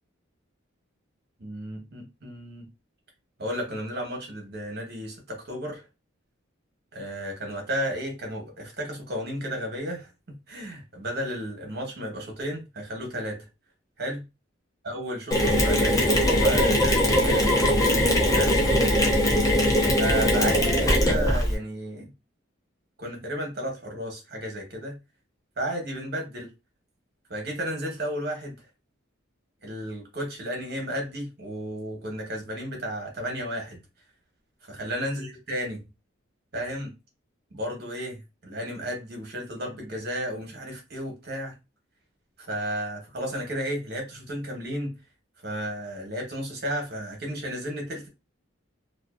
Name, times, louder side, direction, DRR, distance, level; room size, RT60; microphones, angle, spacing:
voice 1, 1.4-2.6 3.4-5.8 6.9-13.5 14.0-14.2 14.8-17.5 18.3-18.6 20.0-22.1 23.0-25.0 25.6-26.5 27.3-28.6 29.6-33.8 34.7-35.8 36.5-36.9 37.5-41.5 42.5-44.9 45.4-48.1, equal, 55° right, 1.0 m, -33 dB
Mechanisms, 15.3-21.5, equal, 15° left, 0.5 m, -21 dB
2.6 x 2.4 x 2.4 m
head